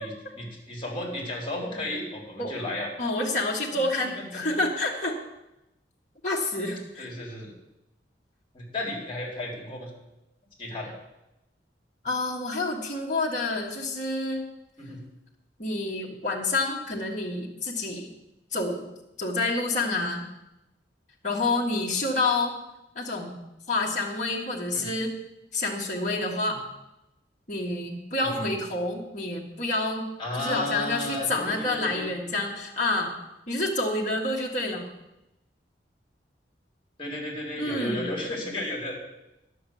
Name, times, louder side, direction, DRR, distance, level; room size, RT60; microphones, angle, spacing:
voice 1, 0.0-2.9 3.7-4.6 7.0-7.6 8.5-9.9 10.6-10.9 14.8-15.0 24.7-24.9 28.2-28.6 30.2-32.1 37.0-39.0, left 1 dB, 30° left, -1 dB, 3.7 m, -34 dB
voice 2, 3.0-5.1 6.2-7.1 12.0-14.4 15.6-18.1 18.5-18.8 19.2-20.2 21.2-22.6 23.0-23.4 23.7-25.1 25.5-26.6 27.5-30.1 30.4-33.1 33.5-34.9 37.6-38.1, left 2 dB, 45° left, -3 dB, 1.9 m, -28 dB
11.0 x 6.9 x 8.6 m, 0.93 s
head